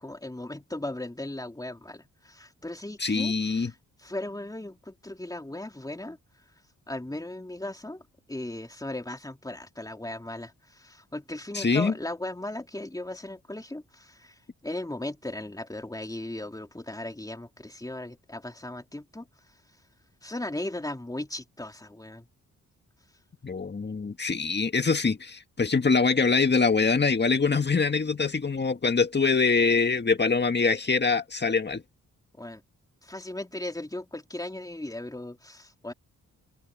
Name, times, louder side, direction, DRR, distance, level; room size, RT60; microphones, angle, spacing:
voice 1, 0.0-6.5 6.9-19.6 20.2-22.3 32.3-32.6 33.0-35.9, left 1 dB, 10° left, 3.3 m, -37 dB
voice 2, 3.0-3.7 11.6-11.9 23.4-31.8, left 4 dB, 35° left, 1.8 m, -24 dB
cardioid pair, 80°, 32 cm